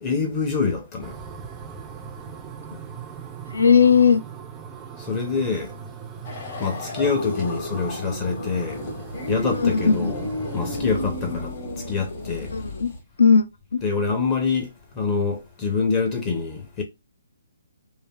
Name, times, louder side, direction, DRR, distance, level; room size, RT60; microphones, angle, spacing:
voice 1, 0.0-1.2 5.0-5.8 6.6-8.8 9.3-10.2 10.5-12.5 13.8-16.8, left 4 dB, 25° left, 0.6 m, -26 dB
sound 1, 1.0-10.8, right 6 dB, 15° right, 0.3 m, -39 dB
voice 2, 3.5-4.2 9.6-10.1 12.5-12.9 13.2-13.4 13.7-13.8, left 6 dB, 85° left, 0.5 m, -17 dB
sound 2, 6.2-13.0, left 2 dB, 45° left, 1.3 m, -32 dB
3.2 x 2.4 x 2.3 m
hypercardioid pair, 150°, 0 cm